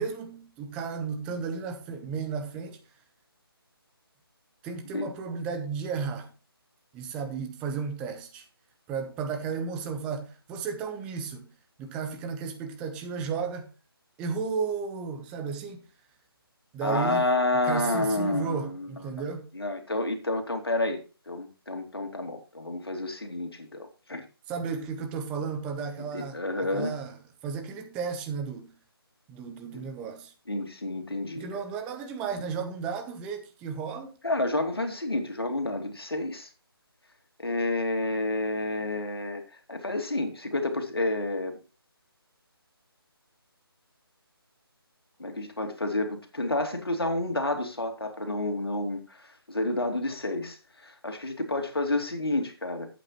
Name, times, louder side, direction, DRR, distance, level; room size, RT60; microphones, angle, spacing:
voice 1, 0.0-2.8 4.6-6.3 6.9-8.4 8.9-11.5 11.8-13.7 14.2-15.8 16.7-17.3 17.6-19.5 24.5-27.2 27.4-28.7 29.3-30.3 31.4-34.1, right 5 dB, 5° right, 0.6 m, -34 dB
voice 2, 16.8-18.9 19.5-24.2 26.1-26.9 29.7-29.8 30.5-31.5 34.2-36.5 37.4-39.4 39.7-41.5 45.2-50.6 50.8-52.9, left 2 dB, 70° left, 2.5 m, -29 dB
11.5 x 8.4 x 3.0 m
figure-of-eight pair, 155°, 13 cm